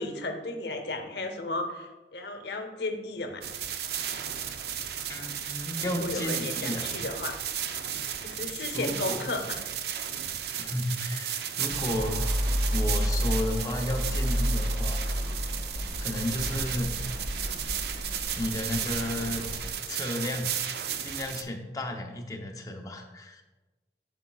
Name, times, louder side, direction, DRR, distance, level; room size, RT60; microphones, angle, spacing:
voice 1, 0.0-3.4 5.8-7.4 8.2-9.6, left 2 dB, 75° left, 6 dB, 0.8 m, -34 dB
sound 1, 3.4-21.4, right 9 dB, 65° right, 0.4 m, -34 dB
voice 2, 5.1-6.9 8.7-9.5 10.6-12.2 12.7-15.1 16.0-16.9 18.4-20.6 21.0-23.4, left 1 dB, 20° left, 3 dB, 0.6 m, -33 dB
sound 2, 11.7-19.7, equal, 40° right, 1.4 m, -31 dB
8.1 x 7.0 x 2.3 m, 1.2 s
head